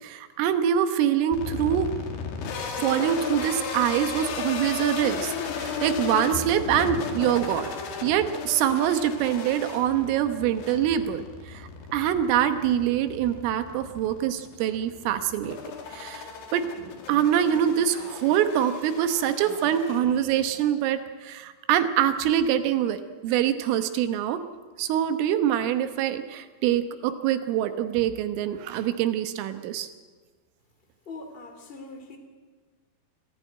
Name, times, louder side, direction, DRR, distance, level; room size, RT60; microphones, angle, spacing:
voice 1, 0.0-1.9 2.8-7.7 8.0-15.6 15.9-24.4 24.8-29.9, right 10 dB, 85° right, 9 dB, 3.7 m, -25 dB
sound 1, 1.3-20.5, left 6 dB, 75° left, 4.8 m, -35 dB
voice 2, 31.0-32.2, left 3 dB, 15° left, 5 dB, 2.0 m, -41 dB
25.0 x 15.0 x 9.2 m, 1.4 s
omnidirectional pair, 5.7 m